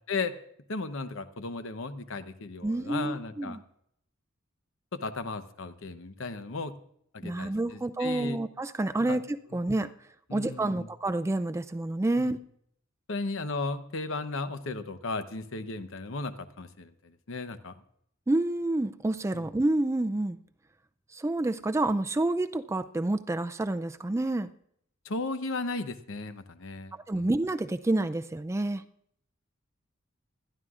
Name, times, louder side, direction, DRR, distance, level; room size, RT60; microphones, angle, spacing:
voice 1, 0.7-3.6 4.9-6.7 7.1-8.4 9.1-9.2 9.5-9.6 10.3-10.9 12.2-12.3 13.1-17.7 19.3-19.4 25.0-27.3, left 3 dB, 65° left, 11 dB, 0.9 m, -35 dB
voice 2, 2.6-3.6 7.2-9.9 10.3-12.4 18.3-20.4 21.1-24.5 26.9-28.8, right 2 dB, 15° right, 11 dB, 0.4 m, -28 dB
20.5 x 13.0 x 2.4 m, 0.69 s
head